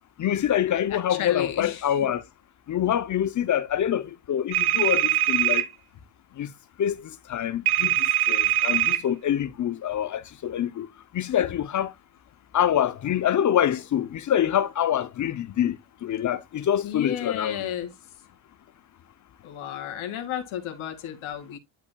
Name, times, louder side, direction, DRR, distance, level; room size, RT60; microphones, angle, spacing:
voice 1, 0.2-2.2 2.7-5.6 6.4-6.5 6.8-8.0 8.3-10.9 11.1-11.9 12.5-17.7, left 10 dB, 40° left, 0.5 m, -25 dB
voice 2, 0.9-1.9 16.8-17.9 19.4-21.6, left 10 dB, 70° left, 2.2 m, -32 dB
sound 1, 4.5-5.6 7.7-9.0, right 13 dB, 80° right, 1.7 m, -22 dB
11.5 x 5.4 x 2.2 m
cardioid pair, 150°, 50 cm